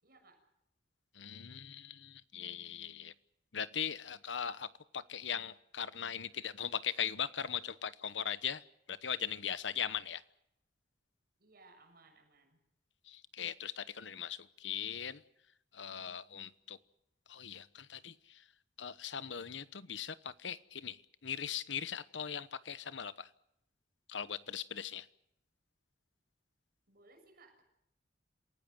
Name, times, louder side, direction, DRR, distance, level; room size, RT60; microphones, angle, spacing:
voice 1, 0.0-0.4 11.4-12.6 26.9-27.6, right 3 dB, 55° right, 4 dB, 6.8 m, -62 dB
voice 2, 1.1-3.1 3.5-8.6 8.9-10.2 13.0-15.2 15.7-16.8 17.3-18.4 18.8-23.3 24.1-25.1, left 8 dB, 85° left, 16 dB, 1.0 m, -40 dB
27.5 x 17.5 x 7.9 m, 0.80 s
head